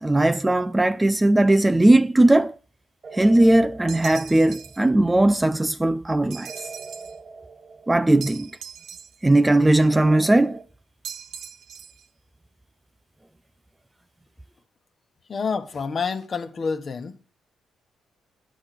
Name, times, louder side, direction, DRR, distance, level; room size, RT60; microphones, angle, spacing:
voice 1, 0.0-2.6 3.1-6.5 7.9-8.5 9.2-10.6, right 1 dB, 15° right, 0.4 m, -18 dB
sound 1, 3.0-5.1 6.5-8.5 9.9-10.6, right 4 dB, 35° right, 1.2 m, -41 dB
sound 2, 3.9-4.9 6.3-7.2 8.2-9.4 11.0-12.1, right 8 dB, 70° right, 0.7 m, -40 dB
voice 2, 15.3-17.2, left 5 dB, 45° left, 1.1 m, -28 dB
9.7 x 6.0 x 6.8 m
cardioid pair, 90°, 0 cm